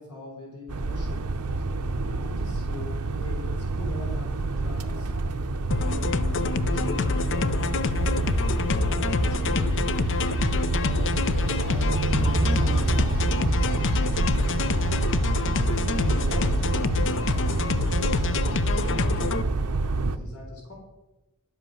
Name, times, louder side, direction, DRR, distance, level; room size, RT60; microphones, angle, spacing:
voice 1, 0.0-5.4 5.7-6.1 6.7-7.6 8.1-15.1 15.9-20.7, left 2 dB, 90° left, 0 dB, 3.6 m, -42 dB
sound 1, 0.7-20.2, right 3 dB, 90° right, 0.7 m, -27 dB
sound 2, 5.7-19.4, left 4 dB, 55° left, 0.5 m, -27 dB
Truck / Idling, 12.2-17.7, right 1 dB, 15° right, 0.6 m, -31 dB
11.0 x 8.0 x 6.2 m, 1.0 s
head